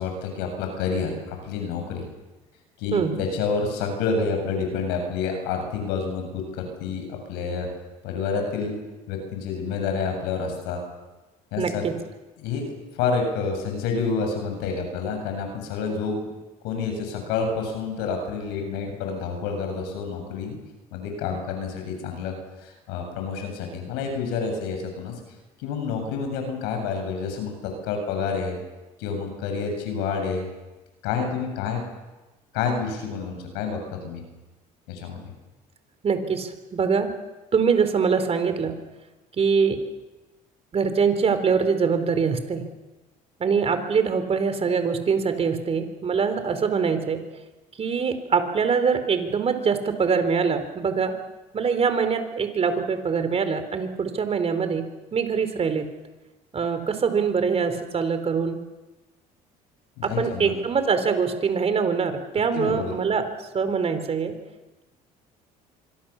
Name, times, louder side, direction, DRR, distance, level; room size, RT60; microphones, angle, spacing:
voice 1, 0.0-2.0 2.8-7.7 8.0-8.7 9.1-10.8 11.5-11.8 12.4-16.2 16.6-20.6 20.9-22.3 22.6-25.1 25.6-28.6 29.0-30.5 31.0-31.8 32.5-34.2 34.9-35.2 60.0-60.5 62.5-62.9, left 5 dB, 85° left, 4 dB, 7.4 m, -28 dB
voice 2, 11.6-12.0 36.0-37.1 37.5-38.8 39.4-39.8 40.7-42.7 43.4-47.2 47.8-51.1 51.5-55.9 56.5-58.6 60.0-64.3, right 5 dB, 35° right, 9 dB, 3.9 m, -23 dB
25.0 x 23.5 x 7.2 m, 1.1 s
supercardioid pair, 95°, 17 cm